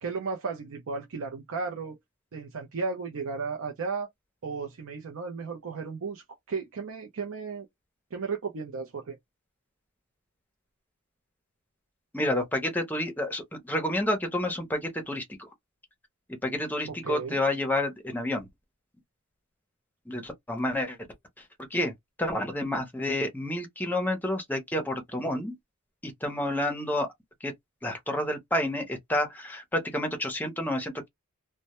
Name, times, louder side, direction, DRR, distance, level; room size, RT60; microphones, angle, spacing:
voice 1, 0.0-2.0 2.3-4.1 4.4-7.7 8.1-9.2 17.0-17.4, right 4 dB, 75° right, 0.5 m, -34 dB
voice 2, 12.1-15.5 16.4-18.5 20.1-21.0 21.7-21.9 22.2-25.5 26.0-27.1 27.4-27.5 27.8-31.1, left 1 dB, 10° left, 0.6 m, -29 dB
2.1 x 2.1 x 2.9 m
head